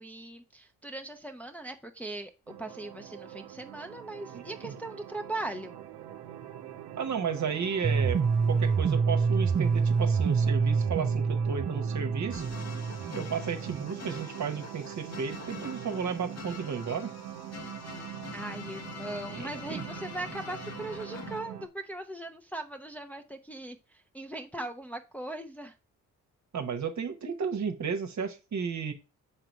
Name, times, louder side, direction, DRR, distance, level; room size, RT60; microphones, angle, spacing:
voice 1, 0.0-5.8 18.3-25.8, right 2 dB, 5° left, 3 dB, 0.7 m, -39 dB
sound 1, 2.5-21.7, right 11 dB, 75° right, 0.8 m, -43 dB
voice 2, 4.3-4.7 7.0-8.2 8.5-12.5 13.1-17.1 19.3-19.9 26.5-28.9, right 6 dB, 50° right, 7 dB, 1.1 m, -33 dB
sound 2, 7.8-13.8, right 5 dB, 20° right, 0.3 m, -27 dB
sound 3, 12.3-21.4, left 5 dB, 45° left, 1.0 m, -45 dB
5.8 x 4.0 x 4.5 m, 0.31 s
hypercardioid pair, 45°, 37 cm